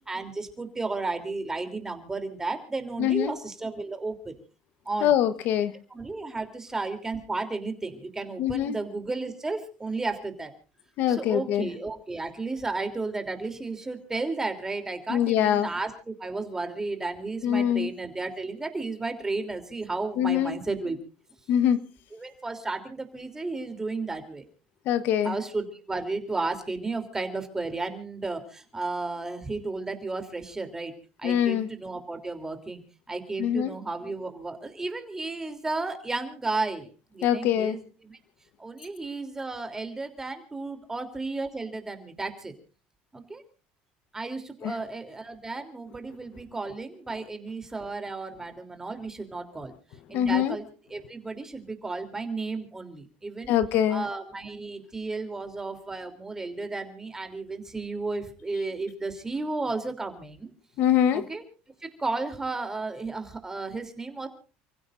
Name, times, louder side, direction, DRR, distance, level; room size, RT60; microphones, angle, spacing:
voice 1, 0.1-4.3 4.8-5.1 5.9-10.5 11.1-21.0 22.1-24.5 25.2-30.9 31.2-32.8 33.1-38.2 38.6-42.5 43.1-43.4 44.1-49.7 50.1-50.6 50.9-53.5 53.9-60.5 61.1-61.4 61.8-64.3, right 3 dB, 15° right, 6 dB, 3.3 m, -33 dB
voice 2, 3.0-3.3 5.0-5.8 8.4-8.8 11.0-11.7 15.1-15.7 17.4-17.9 20.2-20.6 21.5-21.8 24.8-25.4 31.2-31.7 33.4-33.7 37.2-37.8 44.6-44.7 50.1-50.6 53.5-54.0 60.8-61.2, left 10 dB, 60° left, 12 dB, 1.1 m, -24 dB
29.5 x 16.0 x 2.6 m, 0.37 s
cardioid pair, 125°, 4 cm